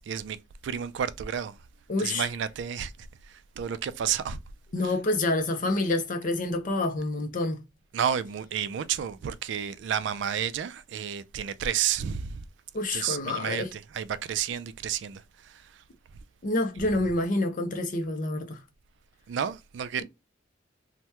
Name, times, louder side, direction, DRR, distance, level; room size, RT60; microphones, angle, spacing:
voice 1, 0.1-1.6 2.0-4.4 7.9-12.4 12.9-15.8 19.3-20.0, right 8 dB, 65° right, 0.3 m, -31 dB
voice 2, 1.9-2.3 4.7-7.6 12.7-13.7 16.4-18.6, left 2 dB, 45° left, 0.5 m, -27 dB
2.9 x 2.1 x 3.3 m
head